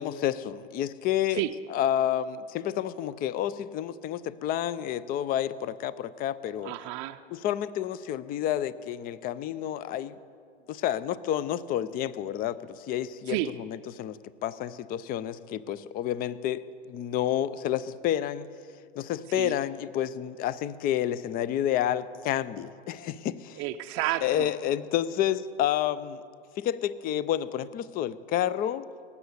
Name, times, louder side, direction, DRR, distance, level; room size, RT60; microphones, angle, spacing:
voice 1, 0.0-6.7 7.3-10.2 10.7-18.5 19.0-23.6 24.2-26.2 26.6-28.9, left 11 dB, 30° left, 18 dB, 0.5 m, -30 dB
voice 2, 6.6-7.2 13.3-13.5 19.3-19.5 23.6-24.5, right 16 dB, 45° right, 6 dB, 0.5 m, -31 dB
18.0 x 7.1 x 8.1 m, 2.3 s
hypercardioid pair, 110°, 31 cm